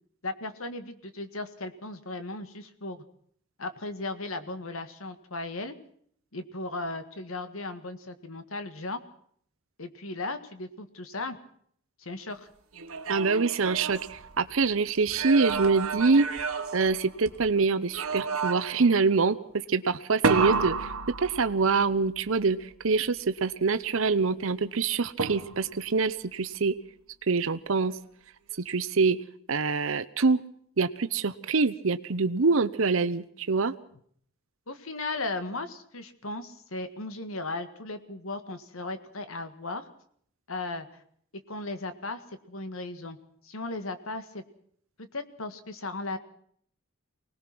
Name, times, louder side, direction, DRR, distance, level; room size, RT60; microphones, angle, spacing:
voice 1, 0.2-3.0 3.6-5.7 6.3-9.0 9.8-11.4 12.0-12.5 34.7-39.8 40.5-40.9 41.5-42.2 42.5-43.2 43.4-44.4 45.0-46.2, left 2 dB, 75° left, 10 dB, 1.8 m, -36 dB
sound 1, 12.7-14.6 15.1-17.5 17.9-18.9 20.2-21.8 25.2-25.8, right 4 dB, 90° right, 1.6 m, -31 dB
voice 2, 13.1-16.3 16.7-26.8 27.3-28.0 28.6-29.2 29.5-30.4 30.8-33.7, right 4 dB, 70° right, 12 dB, 0.8 m, -25 dB
24.5 x 19.0 x 6.1 m, 0.62 s
head